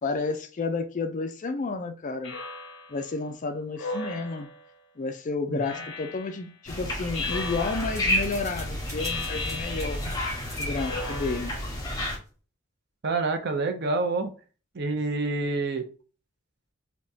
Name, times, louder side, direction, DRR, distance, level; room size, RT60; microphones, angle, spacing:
voice 1, 0.0-2.3 2.9-4.5 5.0-10.0 10.6-11.5, left 3 dB, 40° left, 0.4 m, -31 dB
Speech synthesizer, 2.2-3.0 3.8-4.7 5.6-6.4 7.1-8.1 9.0-10.2 10.7-11.8, left 3 dB, 60° left, 0.8 m, -36 dB
sound 1, 6.7-12.2, left 1 dB, 15° left, 1.1 m, -31 dB
sound 2, 7.0-12.3, right 1 dB, 15° right, 1.1 m, -47 dB
voice 2, 13.0-14.3 14.7-15.8, right 3 dB, 50° right, 0.6 m, -27 dB
3.4 x 2.9 x 2.7 m
head